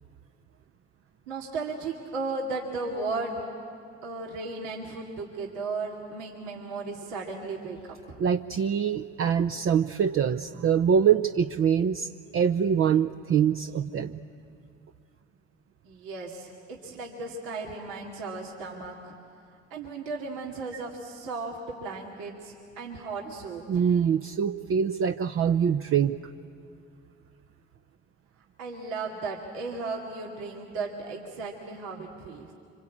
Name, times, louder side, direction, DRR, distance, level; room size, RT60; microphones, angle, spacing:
voice 1, 1.3-3.4 4.0-7.8 8.1-8.2 15.8-19.1 19.7-23.9 28.6-32.5, right 3 dB, 75° right, -2 dB, 2.5 m, -35 dB
voice 2, 8.2-14.2 23.7-26.2, right 7 dB, 45° right, 8 dB, 0.8 m, -24 dB
26.0 x 25.5 x 8.5 m, 2.4 s
hypercardioid pair, 55°, 31 cm